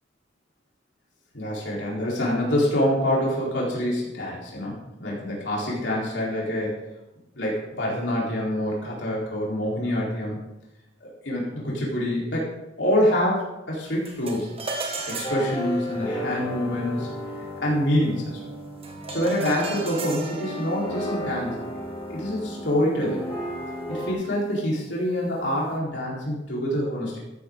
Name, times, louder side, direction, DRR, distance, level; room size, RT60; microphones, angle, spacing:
voice 1, 1.3-6.8 7.3-10.4 11.0-12.5 12.8-14.5 15.0-17.1 17.6-18.4 19.1-21.5 22.1-23.2 23.9-27.2, left 1 dB, 70° left, -4 dB, 4.2 m, -26 dB
sound 1, 14.0-23.5, right 3 dB, 30° right, 1.4 m, -38 dB
sound 2, 15.2-24.1, equal, 25° left, 3.7 m, -34 dB
13.0 x 11.0 x 3.9 m, 0.96 s
head